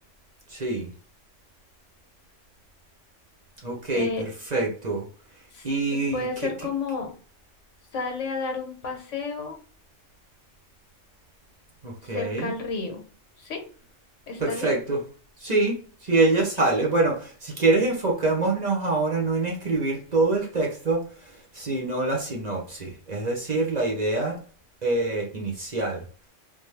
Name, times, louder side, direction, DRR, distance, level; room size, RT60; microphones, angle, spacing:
voice 1, 0.5-0.9 3.6-5.0 5.6-6.3 11.8-12.5 14.4-15.0 15.4-24.4 24.8-26.0, right 2 dB, 40° right, -1 dB, 0.9 m, -25 dB
voice 2, 5.5-7.1 7.9-9.6 12.1-13.0 13.4-13.6 14.3-14.7, left 4 dB, 75° left, 3 dB, 1.4 m, -31 dB
3.6 x 2.8 x 3.2 m, 0.40 s
omnidirectional pair, 1.3 m